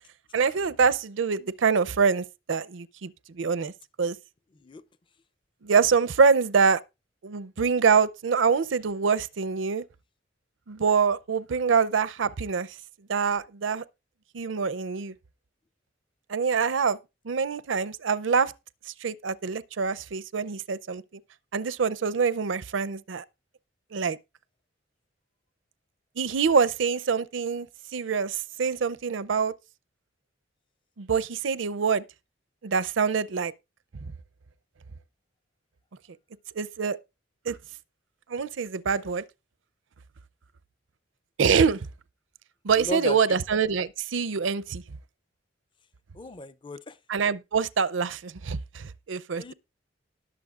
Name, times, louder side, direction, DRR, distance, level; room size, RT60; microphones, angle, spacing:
voice 1, 0.3-3.7 4.0-4.2 5.6-6.8 7.2-9.8 10.7-12.8 13.1-13.8 14.3-15.1 16.3-17.0 17.2-18.5 18.9-21.0 21.5-23.2 23.9-24.2 26.2-27.7 27.9-29.5 31.0-32.0 32.6-33.5 36.6-37.0 37.5-37.6 38.3-39.2 41.4-41.9 42.6-44.8 47.1-49.5, right 5 dB, 75° right, 0.5 m, -25 dB
voice 2, 42.8-43.4 46.1-47.0 49.3-49.5, left 1 dB, 25° left, 0.5 m, -36 dB
19.5 x 6.9 x 2.4 m
head